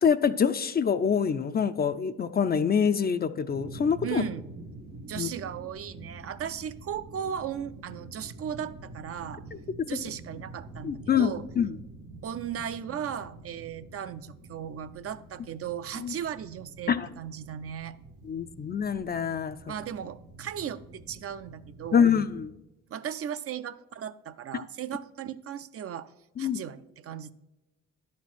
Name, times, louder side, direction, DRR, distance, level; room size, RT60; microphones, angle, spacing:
voice 1, 0.0-4.2 5.2-5.3 10.8-11.8 16.0-16.1 16.9-17.1 18.2-19.6 21.9-22.5 26.4-26.6, left 7 dB, 30° left, 11 dB, 0.4 m, -25 dB
sound 1, 3.5-22.5, right 2 dB, 80° right, 1.4 m, -47 dB
voice 2, 4.0-4.4 5.1-9.4 9.9-11.4 12.2-18.0 19.7-22.1 22.9-26.1 26.4-27.3, right 9 dB, 50° right, 12 dB, 0.5 m, -36 dB
10.5 x 4.3 x 6.0 m, 0.96 s
cardioid pair, 90°, 30 cm